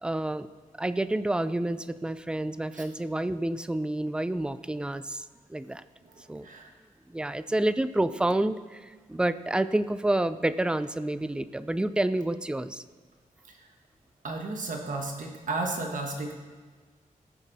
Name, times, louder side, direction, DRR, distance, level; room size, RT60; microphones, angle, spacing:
voice 1, 0.0-0.5 0.8-5.8 6.3-6.5 7.1-12.8, right 1 dB, 5° right, 13 dB, 0.3 m, -29 dB
voice 2, 6.1-6.7 13.6-13.7 14.2-16.3, right 2 dB, 65° right, 2 dB, 1.3 m, -33 dB
18.0 x 7.3 x 4.1 m, 1.5 s
wide cardioid pair, 175°, 14 cm